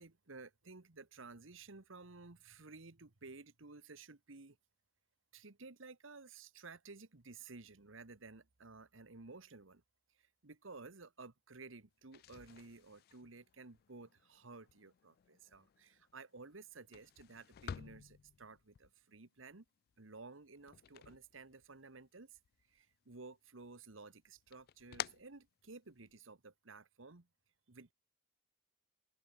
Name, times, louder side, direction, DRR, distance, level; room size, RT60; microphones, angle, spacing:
voice 1, 0.0-4.6 5.3-9.8 10.2-19.6 20.0-22.4 22.7-27.3 27.7-27.9, right 3 dB, 75° right, 1.5 m, -54 dB
sound 1, 12.0-22.0 22.3-23.2 23.6-26.2, left 9 dB, 50° left, 0.3 m, -52 dB
open air
head